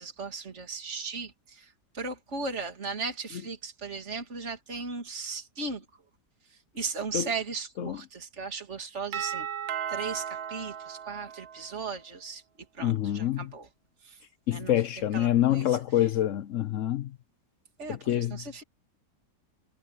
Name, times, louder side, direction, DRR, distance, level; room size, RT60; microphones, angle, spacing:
voice 1, 0.0-5.8 6.7-9.5 9.9-12.4 12.7-13.7 14.0-14.2 14.5-14.7 15.1-15.8 17.8-18.6, right 4 dB, 40° right, 3.1 m, -37 dB
Doorbell, 9.1-11.9, right 8 dB, 65° right, 1.2 m, -36 dB
voice 2, 12.8-13.5 14.5-17.2 17.9-18.4, left 12 dB, 65° left, 0.8 m, -26 dB
omnidirectional pair, 1.9 m